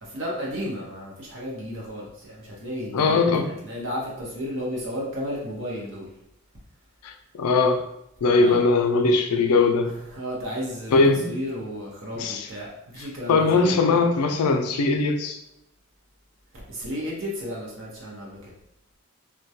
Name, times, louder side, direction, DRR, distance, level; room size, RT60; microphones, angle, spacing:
voice 1, 0.0-6.1 8.3-8.6 10.1-11.0 11.2-13.8 16.7-18.5, equal, 55° right, -3 dB, 0.8 m, -33 dB
voice 2, 2.9-3.5 7.0-7.9 8.2-9.9 10.9-11.3 12.2-12.5 13.3-15.4, left 3 dB, 85° left, 5 dB, 0.4 m, -20 dB
2.2 x 2.2 x 2.7 m, 0.80 s
head